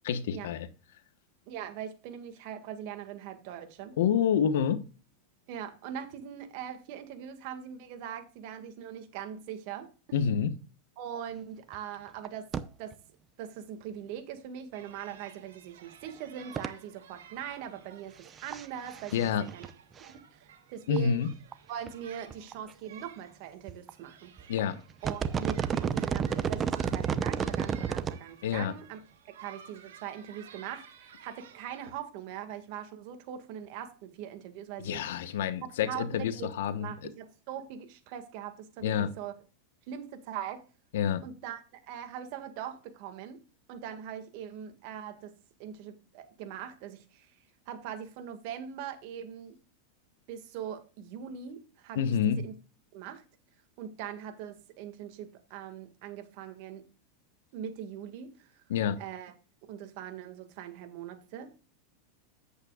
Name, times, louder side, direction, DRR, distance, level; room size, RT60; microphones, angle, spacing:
voice 1, 0.0-0.7 4.0-4.8 10.1-10.5 19.1-19.5 20.9-21.3 24.5-24.8 28.4-28.7 34.8-36.9 38.8-39.1 40.9-41.2 51.9-52.4 58.7-59.0, left 8 dB, 80° left, 1.1 m, -28 dB
voice 2, 1.5-4.0 5.5-10.2 11.0-12.5 12.8-13.0 13.4-18.1 18.4-19.7 20.1-21.2 21.7-24.3 25.0-29.0 29.3-35.0 35.6-36.5 36.8-39.3 39.9-40.6 41.2-43.4 43.7-45.3 45.6-47.3 47.7-49.6 50.3-52.0 52.2-52.5 52.9-53.2 53.8-56.8 57.5-58.5 59.0-59.3 59.7-61.6, right 9 dB, 55° right, 1.9 m, -41 dB
sound 1, 11.7-11.8 12.1-12.3 12.5-12.6 12.9-13.0 15.3-15.4 16.5-16.7 18.3-18.7 18.9-19.7 20.0-20.1 21.0-21.1 21.5-21.6 21.9-22.0 22.3-22.7 23.7-23.9 24.4-24.6 24.9-28.2 28.5-28.6, right 7 dB, 25° right, 0.7 m, -31 dB
sound 2, 14.7-31.9, right 8 dB, 90° right, 2.0 m, -54 dB
9.7 x 8.4 x 2.4 m
supercardioid pair, 135°, 0 cm